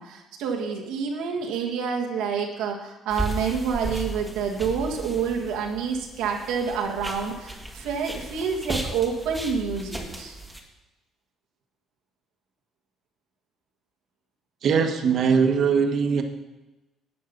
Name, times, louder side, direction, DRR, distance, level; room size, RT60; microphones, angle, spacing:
voice 1, 0.0-10.3, right 6 dB, 85° right, -1 dB, 1.6 m, -28 dB
sound 1, 3.1-10.6, right 1 dB, ahead, 1.8 m, -35 dB
voice 2, 14.6-16.2, right 6 dB, 55° right, 5 dB, 1.4 m, -21 dB
11.0 x 8.6 x 5.3 m, 1.0 s
cardioid pair, 100°, 0 cm